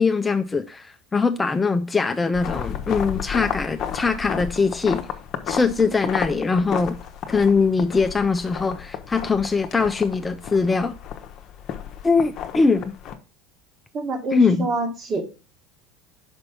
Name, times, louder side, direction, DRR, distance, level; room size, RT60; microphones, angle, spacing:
voice 1, 0.0-5.1 5.5-7.0 7.3-11.0 12.0-13.0 14.3-14.7, left 4 dB, 15° left, 0.5 m, -21 dB
sound 1, 2.3-13.1, left 9 dB, 45° left, 0.9 m, -33 dB
voice 2, 13.9-15.2, right 3 dB, 35° right, 1.6 m, -26 dB
5.3 x 5.2 x 5.6 m
figure-of-eight pair, 75°, 0 cm